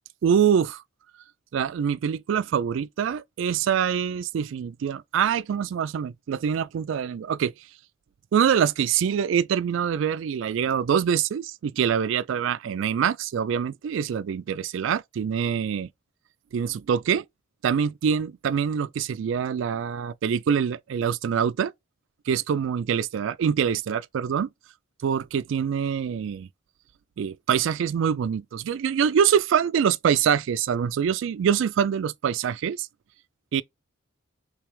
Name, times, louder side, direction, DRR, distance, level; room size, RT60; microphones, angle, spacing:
voice 1, 0.2-0.8 1.5-7.5 8.3-15.9 16.5-17.2 17.6-21.7 22.3-24.5 25.0-26.5 27.2-32.9 33.5-33.6, right 7 dB, 65° right, 0.3 m, -25 dB
3.3 x 3.1 x 3.3 m
head